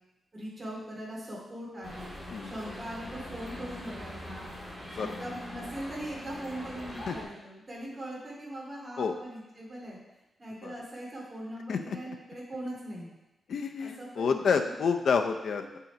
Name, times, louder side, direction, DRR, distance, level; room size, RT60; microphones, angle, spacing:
voice 1, 0.3-2.2 2.4-4.4 4.9-10.0 10.4-13.1 13.8-14.7 15.7-15.8, right 1 dB, 20° right, -5 dB, 2.5 m, -40 dB
sound 1, 1.8-7.2, left 1 dB, 5° left, 2.2 m, -42 dB
voice 2, 13.5-15.6, left 5 dB, 60° left, 5 dB, 0.5 m, -28 dB
7.2 x 5.5 x 5.0 m, 0.97 s
wide cardioid pair, 170°, 0 cm